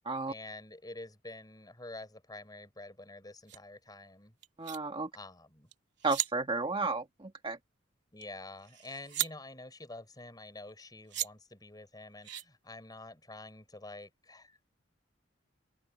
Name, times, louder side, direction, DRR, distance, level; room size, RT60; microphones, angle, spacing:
voice 1, 0.3-4.3 5.1-5.7 8.1-14.6, left 2 dB, 20° left, 5.9 m, -48 dB
sound 1, 3.5-3.6 4.4-4.8 5.7-5.8 6.0-6.3 8.2-8.3 8.6-9.3 10.7-10.8 11.1-11.3 12.2-12.4, right 13 dB, 65° right, 3.2 m, -35 dB
voice 2, 4.6-5.1 6.0-7.6, right 3 dB, 30° right, 1.6 m, -33 dB
open air
head